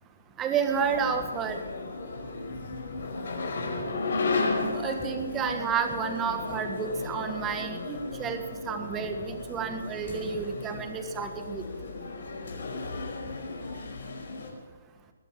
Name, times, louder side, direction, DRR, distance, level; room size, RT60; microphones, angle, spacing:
voice 1, 0.4-1.6 4.7-11.6, right 6 dB, 15° right, 7 dB, 1.6 m, -31 dB
sound 1, 0.6-14.5, left 3 dB, 60° left, 5.1 m, -34 dB
21.0 x 8.2 x 8.4 m, 1.4 s
hypercardioid pair, 160°, 0 cm